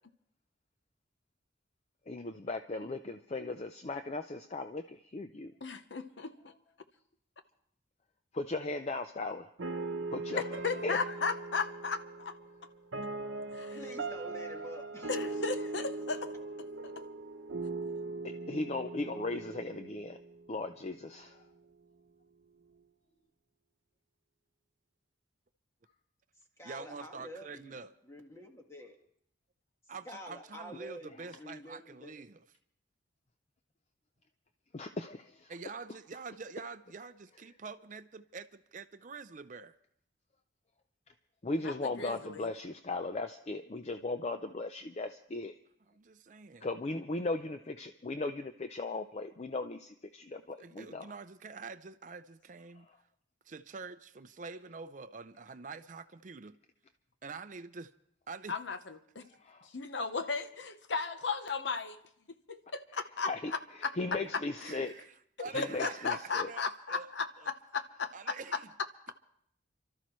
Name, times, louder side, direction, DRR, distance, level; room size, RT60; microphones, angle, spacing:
voice 1, 2.1-5.5 8.3-9.5 10.1-11.0 18.2-20.2 20.5-21.4 34.7-35.5 41.4-45.5 46.6-51.1 52.8-52.9 59.3-59.7 63.3-63.5 64.0-64.9 65.5-66.5, left 2 dB, 35° left, 0.5 m, -37 dB
voice 2, 5.6-6.3 10.3-12.4 13.5-13.8 15.1-16.3 41.6-42.5 58.5-59.3 59.6-62.0 62.5-63.9 64.6-64.8 65.5-68.3, left 4 dB, 65° left, 0.9 m, -36 dB
sound 1, 9.6-20.7, right 3 dB, 75° right, 0.8 m, -40 dB
voice 3, 13.7-15.1 26.6-27.8 28.0-29.0 30.0-32.2, equal, 15° left, 1.7 m, -47 dB
voice 4, 26.6-27.9 29.9-32.4 35.5-38.5 38.7-39.8 46.0-46.7 50.6-52.9 53.4-56.6 57.2-57.9 58.3-58.5 64.6-65.1 65.4-67.1 67.4-67.5 68.1-68.7, right 4 dB, 40° right, 0.5 m, -46 dB
28.5 x 13.0 x 3.1 m
head